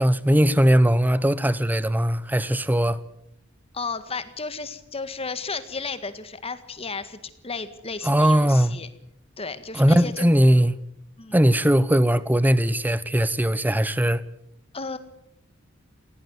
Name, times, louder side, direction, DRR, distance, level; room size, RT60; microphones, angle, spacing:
voice 1, 0.0-3.0 8.0-8.8 9.7-10.8 11.3-14.2, equal, 10° right, 0.9 m, -19 dB
voice 2, 3.7-8.9 9.4-10.3 11.2-11.4 14.7-15.0, left 4 dB, 30° left, 1.8 m, -33 dB
18.5 x 17.0 x 9.6 m
head